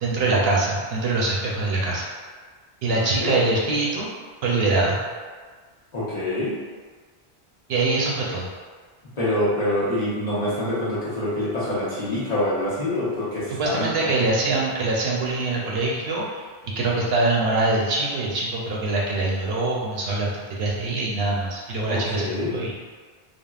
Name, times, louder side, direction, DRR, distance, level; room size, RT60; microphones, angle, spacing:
voice 1, 0.0-2.1 2.8-4.1 4.4-5.0 7.7-8.5 13.5-22.7, right 2 dB, 70° right, -4 dB, 0.8 m, -24 dB
voice 2, 2.8-3.3 5.9-6.5 9.2-14.1 21.9-22.5, left 1 dB, 40° left, -10 dB, 0.8 m, -26 dB
3.4 x 2.1 x 2.3 m, 1.5 s
omnidirectional pair, 1.1 m